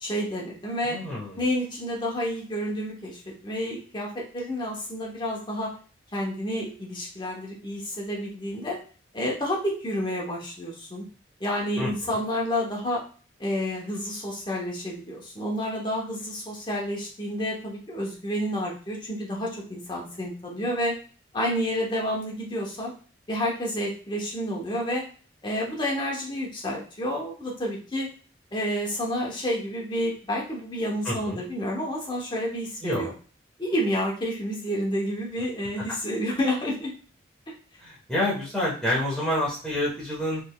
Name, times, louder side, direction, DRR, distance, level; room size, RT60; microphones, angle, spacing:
voice 1, 0.0-1.0 1.4-5.7 6.1-8.8 9.1-11.0 11.4-13.0 13.4-20.9 21.3-22.9 23.3-25.0 25.4-28.1 28.5-33.1 33.6-36.9, equal, 25° left, -2 dB, 0.9 m, -29 dB
voice 2, 0.8-1.4 11.8-12.2 31.0-31.4 32.8-33.1 37.8-40.4, left 1 dB, 5° left, -7 dB, 1.1 m, -28 dB
3.9 x 3.2 x 2.3 m, 0.38 s
head